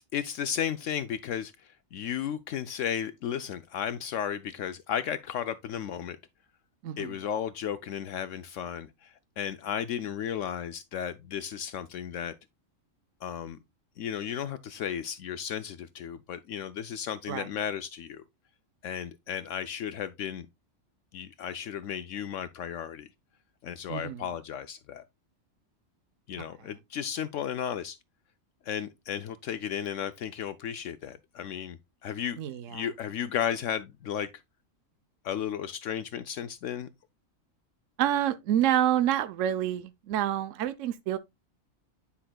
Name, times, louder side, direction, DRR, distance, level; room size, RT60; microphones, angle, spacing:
voice 1, 0.0-6.2 7.0-12.3 13.2-13.6 14.0-18.2 18.8-20.5 21.1-23.1 23.6-25.0 26.3-28.0 28.6-32.4 32.7-34.3 35.2-36.9, left 9 dB, 70° left, 0.9 m, -34 dB
voice 2, 6.8-7.1 17.3-17.5 23.9-24.2 32.4-32.9 38.0-41.2, right 11 dB, 75° right, 0.9 m, -28 dB
10.0 x 5.6 x 2.2 m
omnidirectional pair, 1.4 m